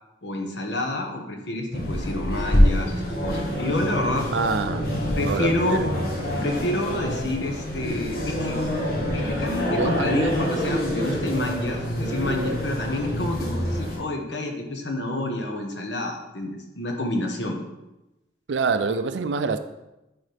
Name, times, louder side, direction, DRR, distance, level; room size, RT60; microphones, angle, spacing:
voice 1, 0.2-4.3 5.2-5.8 6.4-8.6 9.1-16.5 16.8-17.6, left 1 dB, 80° left, 3 dB, 1.1 m, -28 dB
sound 1, 1.7-14.0, equal, 55° left, 1.5 m, -26 dB
voice 2, 4.3-4.9 5.2-5.9 9.6-10.3 18.5-19.6, right 4 dB, 85° right, 11 dB, 0.5 m, -26 dB
10.0 x 4.1 x 3.4 m, 0.97 s
head